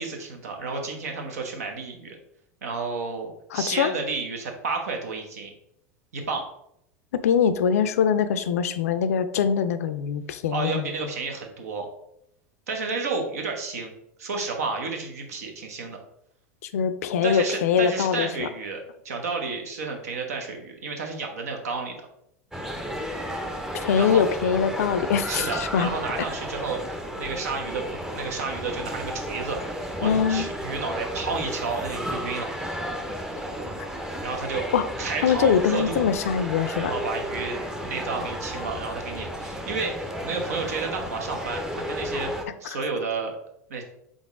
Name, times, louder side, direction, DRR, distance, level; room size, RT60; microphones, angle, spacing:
voice 1, 0.0-2.2 2.6-5.5 6.1-6.5 10.5-11.9 12.7-13.9 14.2-16.0 17.2-21.9 23.9-24.2 25.3-32.5 34.2-34.6 35.0-36.1 36.8-42.3 42.6-43.3 43.7-43.8, right 4 dB, 75° right, 3 dB, 0.9 m, -31 dB
voice 2, 3.5-3.9 7.1-10.9 16.7-18.5 23.8-25.9 30.0-30.5 34.7-34.8 35.2-36.9, left 7 dB, 70° left, 11 dB, 0.4 m, -23 dB
sound 1, 22.5-42.5, equal, 5° right, 0.6 m, -33 dB
3.9 x 3.6 x 3.5 m, 0.78 s
hypercardioid pair, 85°, 8 cm